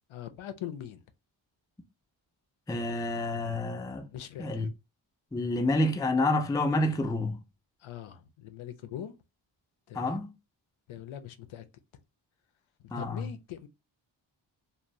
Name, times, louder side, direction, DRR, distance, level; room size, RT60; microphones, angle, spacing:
voice 1, 0.1-1.0 4.1-4.6 7.8-9.2 9.9-10.2 10.9-11.7 11.9-12.0 12.8-13.7, left 10 dB, 75° left, 0.5 m, -42 dB
voice 2, 2.7-4.1 4.4-4.7 5.3-7.4 9.9-10.3 12.9-13.3, left 2 dB, 10° left, 0.3 m, -28 dB
2.6 x 2.0 x 2.9 m
cardioid pair, 80°, 49 cm